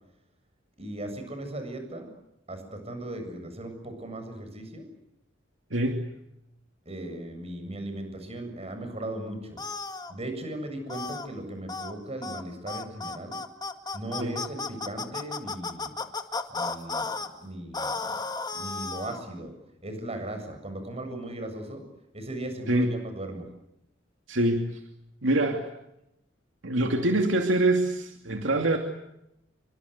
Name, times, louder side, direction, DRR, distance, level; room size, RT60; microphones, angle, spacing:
voice 1, 0.8-2.1 2.5-4.9 6.9-9.6 10.1-13.4 13.9-16.0 16.5-17.1 17.4-18.2 18.5-19.5 19.8-21.8 22.1-23.5, right 1 dB, 35° right, 7 dB, 7.6 m, -37 dB
voice 2, 5.7-6.0 14.2-14.3 22.7-22.9 24.3-24.8 25.2-25.6 26.6-28.8, right 1 dB, 75° right, 4 dB, 2.7 m, -25 dB
sound 1, 9.6-10.1 10.9-11.3 11.7-11.9 12.2-12.4 12.7-17.3 17.7-19.2, left 3 dB, 20° left, 1.9 m, -33 dB
28.5 x 25.0 x 8.2 m, 0.86 s
head